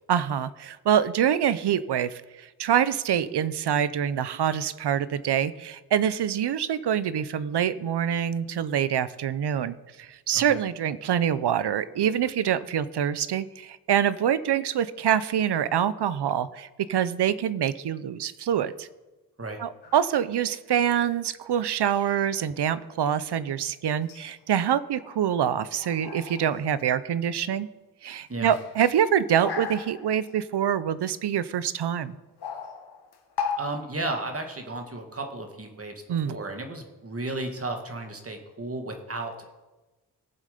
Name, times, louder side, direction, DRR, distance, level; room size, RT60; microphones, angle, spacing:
voice 1, 0.1-18.9 19.6-27.7 28.0-32.1 36.1-36.4, right 9 dB, 75° right, 16 dB, 0.7 m, -25 dB
sound 1, 19.8-20.2 21.9-22.2 24.0-24.4 25.0-25.5 25.8-27.5 28.3-30.4 31.1-31.2 32.2-33.6, left 6 dB, 70° left, 1.4 m, -37 dB
voice 2, 33.6-35.9 36.3-39.5, right 2 dB, 35° right, 4 dB, 1.8 m, -34 dB
18.0 x 7.5 x 5.1 m, 1.1 s
wide cardioid pair, 125°, 40 cm